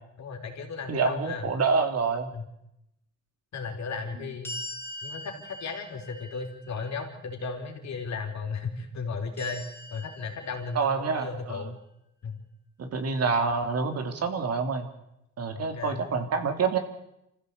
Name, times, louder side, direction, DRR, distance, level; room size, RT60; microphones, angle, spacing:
voice 1, 0.2-1.5 2.3-2.4 3.5-4.6 5.0-11.8 12.2-12.4 15.5-16.1, left 4 dB, 65° left, 3 dB, 4.2 m, -35 dB
voice 2, 0.9-2.3 10.7-11.6 12.8-14.9 15.4-16.8, right 5 dB, 55° right, 7 dB, 3.1 m, -27 dB
sound 1, 4.4-7.6 9.4-11.1, left 1 dB, 5° left, 4.0 m, -42 dB
25.5 x 15.0 x 8.4 m, 0.85 s
cardioid pair, 90°, 30 cm